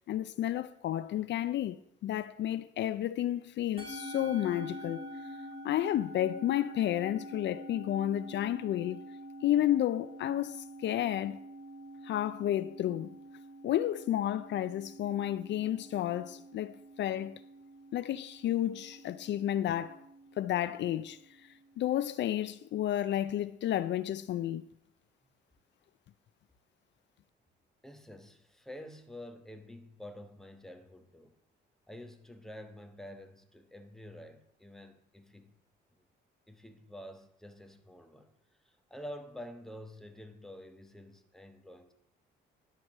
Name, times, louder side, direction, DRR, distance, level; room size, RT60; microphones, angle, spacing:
voice 1, 0.1-1.8 2.0-5.0 5.6-9.0 9.4-11.4 12.0-13.1 13.6-17.4 17.9-20.0 20.4-21.2 21.8-24.6, left 12 dB, 65° left, 0.4 m, -31 dB
Musical instrument, 3.8-22.3, equal, 25° right, 3.3 m, -47 dB
voice 2, 27.8-31.4 31.9-35.5 35.9-36.1 36.5-38.3 38.6-41.9, left 1 dB, ahead, 1.1 m, -48 dB
10.5 x 4.7 x 7.3 m
cardioid pair, 90°, 20 cm